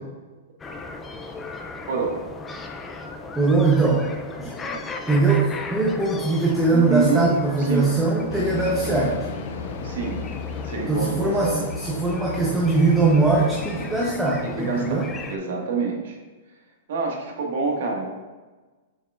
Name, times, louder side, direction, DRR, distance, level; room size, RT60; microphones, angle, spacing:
sound 1, 0.6-15.4, left 3 dB, 10° left, 0.4 m, -37 dB
voice 1, 1.9-2.2 6.7-7.9 8.8-9.0 9.8-10.2 10.6-11.7 14.4-16.2 16.9-18.1, right 5 dB, 60° right, 1 dB, 1.6 m, -27 dB
voice 2, 3.4-4.0 4.4-4.8 5.1-9.2 10.9-15.1, right 3 dB, 5° right, -4 dB, 0.8 m, -21 dB
sound 2, 8.3-14.1, left 4 dB, 60° left, 0.7 m, -34 dB
7.1 x 6.6 x 2.4 m, 1.3 s
hypercardioid pair, 165°, 0 cm